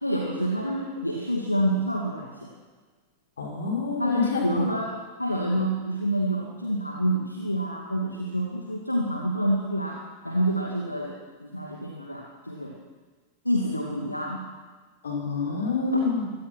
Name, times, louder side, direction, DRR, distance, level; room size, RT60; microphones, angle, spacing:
voice 1, 0.0-2.5 4.0-12.8 13.4-14.4, equal, 85° left, 0 dB, 2.3 m, -28 dB
voice 2, 3.4-4.7 5.5-5.6 15.0-16.2, left 4 dB, 70° left, 0 dB, 6.1 m, -27 dB
25.0 x 18.0 x 6.2 m, 1.4 s
figure-of-eight pair, 90°, 0 cm